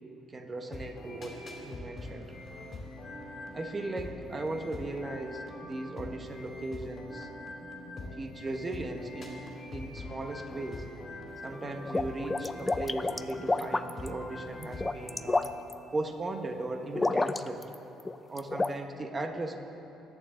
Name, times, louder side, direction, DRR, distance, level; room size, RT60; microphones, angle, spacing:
voice 1, 0.3-2.3 3.5-7.3 8.1-10.9 11.4-15.5 15.9-17.7 18.3-19.6, right 2 dB, 25° right, 6 dB, 1.0 m, -37 dB
sound 1, 0.6-15.4, left 2 dB, 30° left, 2.6 m, -43 dB
sound 2, 11.6-14.1 14.6-15.7 16.9-17.7 18.0-18.7, left 2 dB, 15° left, 0.4 m, -29 dB
21.5 x 9.0 x 3.8 m, 3.0 s
cardioid pair, 120°, 0 cm